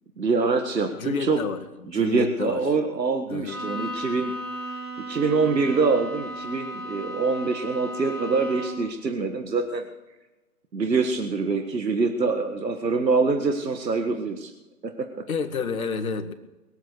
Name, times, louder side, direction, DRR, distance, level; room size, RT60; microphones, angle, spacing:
voice 1, 0.2-1.4 1.9-4.3 5.1-9.8 10.7-14.5 14.8-15.2, right 4 dB, 85° right, 5 dB, 1.8 m, -25 dB
voice 2, 0.9-2.6 3.3-3.6 15.3-16.3, left 5 dB, 55° left, 7 dB, 1.9 m, -30 dB
Bowed string instrument, 3.5-9.0, right 1 dB, ahead, 1.9 m, -35 dB
22.0 x 8.1 x 6.4 m, 1.1 s
hypercardioid pair, 155°, 49 cm